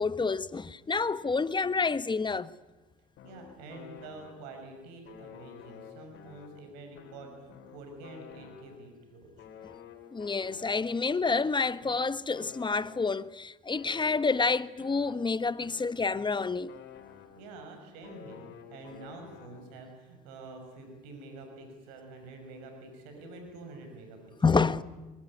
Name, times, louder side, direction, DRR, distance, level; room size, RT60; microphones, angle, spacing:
voice 1, 0.0-2.5 10.1-16.7 24.4-24.8, left 4 dB, 20° left, 1.2 m, -28 dB
sound 1, 3.2-4.7 5.0-9.0 9.4-13.3 13.7-17.6 18.0-19.9, left 8 dB, 65° left, 4.4 m, -51 dB
voice 2, 3.2-9.3 17.4-24.4, right 2 dB, 85° right, 5.9 m, -47 dB
23.5 x 22.0 x 9.8 m
supercardioid pair, 70°, 20 cm